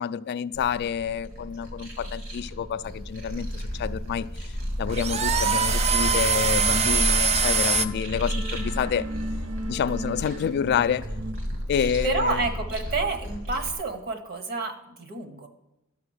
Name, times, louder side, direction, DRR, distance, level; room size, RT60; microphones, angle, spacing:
voice 1, 0.0-4.3 4.8-9.1 9.7-11.1 11.7-12.4, left 7 dB, 50° left, 0.3 m, -28 dB
sound 1, 0.5-13.7, equal, 65° right, 2.2 m, -32 dB
sound 2, 2.9-7.9, right 5 dB, 30° right, 0.4 m, -24 dB
sound 3, 4.8-11.3, right 2 dB, 85° right, 0.8 m, -39 dB
voice 2, 11.8-15.5, right 3 dB, 45° right, 1.1 m, -29 dB
12.0 x 6.0 x 6.4 m
head